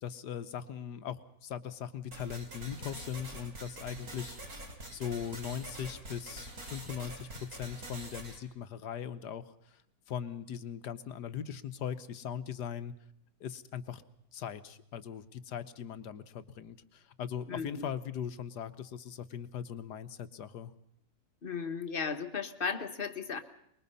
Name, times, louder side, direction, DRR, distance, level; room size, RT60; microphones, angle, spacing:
voice 1, 0.0-9.8 10.1-12.9 13.4-14.0 14.3-20.7, left 8 dB, 65° left, 12 dB, 1.5 m, -40 dB
sound 1, 2.1-8.4, right 1 dB, 50° right, 3.9 m, -45 dB
voice 2, 17.5-17.9 21.4-23.4, left 5 dB, 35° left, 9 dB, 1.3 m, -35 dB
24.0 x 21.5 x 5.5 m, 0.75 s
omnidirectional pair, 2.0 m